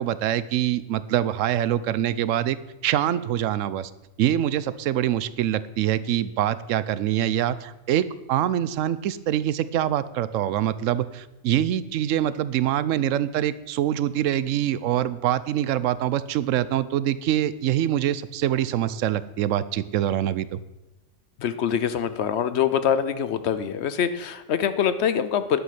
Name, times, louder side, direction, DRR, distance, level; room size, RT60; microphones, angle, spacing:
voice 1, 0.0-2.6 2.8-3.9 4.2-20.6, right 11 dB, 90° right, 16 dB, 1.0 m, -24 dB
voice 2, 21.4-25.6, left 8 dB, 65° left, 12 dB, 0.9 m, -24 dB
11.0 x 8.0 x 5.9 m, 1.0 s
omnidirectional pair, 1.3 m